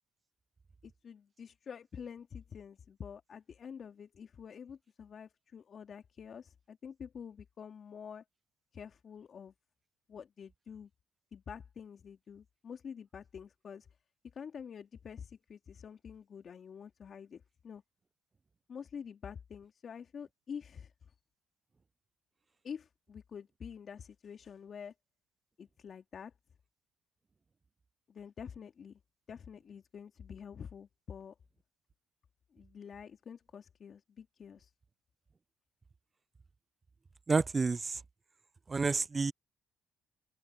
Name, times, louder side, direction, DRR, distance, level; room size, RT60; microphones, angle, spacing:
voice 1, 0.8-8.2 8.7-9.5 10.1-10.9 11.3-13.9 14.3-17.8 18.7-20.9 22.6-24.9 25.6-26.3 28.1-29.0 29.3-31.3 32.5-34.7, left 7 dB, 50° left, 2.8 m, -47 dB
voice 2, 37.3-37.9 38.7-39.3, right 4 dB, 35° right, 0.4 m, -29 dB
open air
supercardioid pair, 60°, 0 cm